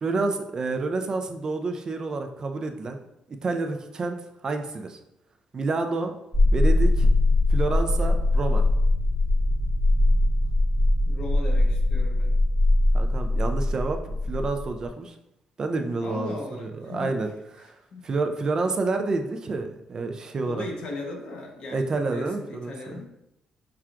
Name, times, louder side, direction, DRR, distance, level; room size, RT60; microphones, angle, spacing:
voice 1, 0.0-3.0 3.3-4.2 4.4-5.0 5.5-6.1 6.5-7.1 7.5-8.7 12.9-15.1 15.6-17.3 17.6-17.7 18.0-20.6 21.7-23.0, right 3 dB, 35° right, 6 dB, 0.3 m, -29 dB
sound 1, 6.3-14.9, left 2 dB, 5° right, 0.8 m, -21 dB
voice 2, 11.0-12.3 16.0-17.2 17.6-18.1 20.5-23.1, left 2 dB, 55° left, 0 dB, 0.9 m, -37 dB
5.7 x 2.3 x 2.4 m, 0.84 s
cardioid pair, 120°, 2 cm